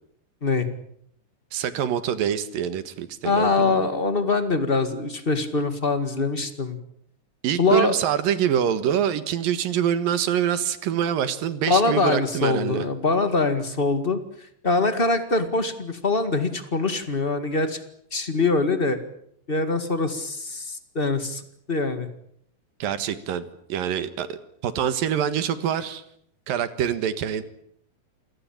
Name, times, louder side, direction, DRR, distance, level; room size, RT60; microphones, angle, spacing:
voice 1, 1.5-3.9 7.4-12.9 22.8-26.0 26.5-27.4, right 9 dB, 80° right, 13 dB, 3.2 m, -25 dB
voice 2, 3.2-6.8 7.6-7.9 11.7-17.8 18.1-19.0 19.5-22.1, left 3 dB, 25° left, 10 dB, 1.3 m, -23 dB
28.0 x 18.0 x 8.9 m, 0.69 s
omnidirectional pair, 4.1 m